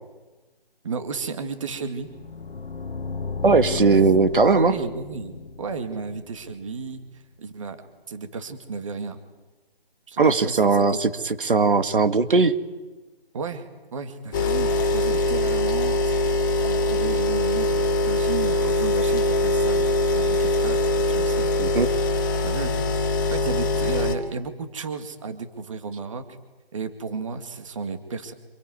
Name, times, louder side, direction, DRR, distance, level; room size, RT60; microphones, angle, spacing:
voice 1, 0.8-2.1 3.5-3.8 4.4-7.0 7.4-7.8 8.1-9.2 10.1-11.0 13.3-16.1 16.6-21.8 22.4-22.7 23.3-26.2 26.7-28.3, right 4 dB, 35° right, 8 dB, 2.1 m, -33 dB
sound 1, 2.0-6.9, left 4 dB, 75° left, 1.4 m, -34 dB
voice 2, 3.4-4.7 10.2-12.5 21.6-21.9, right 4 dB, 60° right, 10 dB, 2.1 m, -19 dB
sound 2, 14.3-24.1, left 1 dB, 20° left, 1.9 m, -22 dB
26.5 x 23.0 x 9.7 m, 1.2 s
figure-of-eight pair, 165°, 30 cm